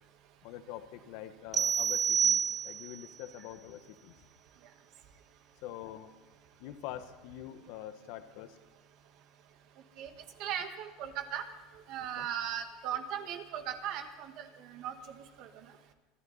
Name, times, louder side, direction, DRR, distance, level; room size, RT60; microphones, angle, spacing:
voice 1, 0.4-2.4 2.6-4.1 5.6-6.1 6.6-8.6 12.2-12.3, left 11 dB, 65° left, 9 dB, 1.3 m, -45 dB
sound 1, 1.5-3.1, right 7 dB, 20° right, 0.4 m, -28 dB
voice 2, 10.4-11.4 11.9-14.9 15.4-15.5, right 9 dB, 55° right, 7 dB, 1.7 m, -37 dB
25.5 x 11.5 x 4.1 m, 1.2 s
supercardioid pair, 140°, 0 cm